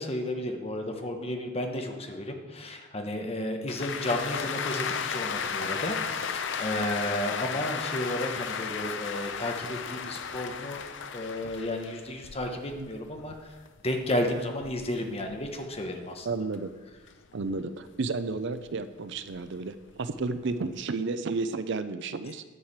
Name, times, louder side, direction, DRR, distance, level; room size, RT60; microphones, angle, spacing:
voice 1, 0.0-10.9 11.1-13.6 13.8-16.3, left 1 dB, 30° left, 4 dB, 1.1 m, -32 dB
sound 1, 3.7-16.1 16.5-18.7 19.1-20.8, left 6 dB, 65° left, 0.6 m, -35 dB
voice 2, 16.2-16.7 17.3-22.4, right 3 dB, 65° right, 12 dB, 0.5 m, -32 dB
10.0 x 4.9 x 7.4 m, 1.3 s
head